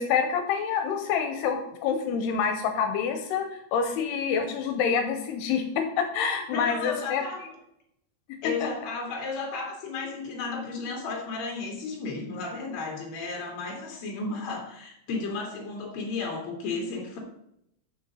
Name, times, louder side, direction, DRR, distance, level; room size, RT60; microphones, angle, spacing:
voice 1, 0.0-7.2 8.6-8.7, left 6 dB, 85° left, 6 dB, 2.9 m, -27 dB
voice 2, 6.5-7.4 8.4-17.2, left 4 dB, 45° left, 0 dB, 3.1 m, -33 dB
7.0 x 6.5 x 7.0 m, 0.77 s
omnidirectional pair, 4.7 m